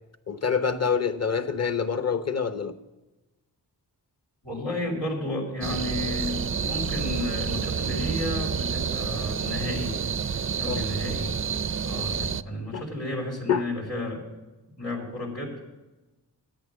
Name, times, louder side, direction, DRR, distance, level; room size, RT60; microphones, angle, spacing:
voice 1, 0.3-2.7 10.7-10.8 12.7-12.8 13.5-13.7, left 6 dB, 35° left, 11 dB, 1.0 m, -26 dB
voice 2, 4.4-10.0 10.6-11.3 11.8-14.2 14.8-15.5, left 1 dB, 90° left, -4 dB, 4.7 m, -32 dB
sound 1, 5.6-12.4, right 7 dB, 30° right, 0.4 m, -29 dB
10.5 x 8.9 x 6.2 m, 1.1 s
cardioid pair, 45°, 43 cm